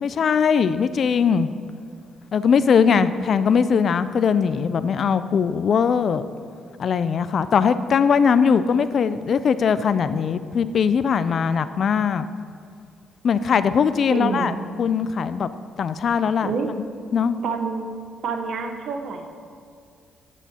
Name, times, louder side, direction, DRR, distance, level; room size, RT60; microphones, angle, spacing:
voice 1, 0.0-1.5 2.3-6.2 6.8-12.3 13.2-15.5 15.8-16.5 17.1-17.4, left 6 dB, 55° left, 13 dB, 0.4 m, -20 dB
voice 2, 14.1-14.6 16.4-16.7 17.4-17.9 18.2-19.3, right 5 dB, 65° right, 5 dB, 0.9 m, -27 dB
13.5 x 8.1 x 2.9 m, 2.3 s
cardioid pair, 90°, 0 cm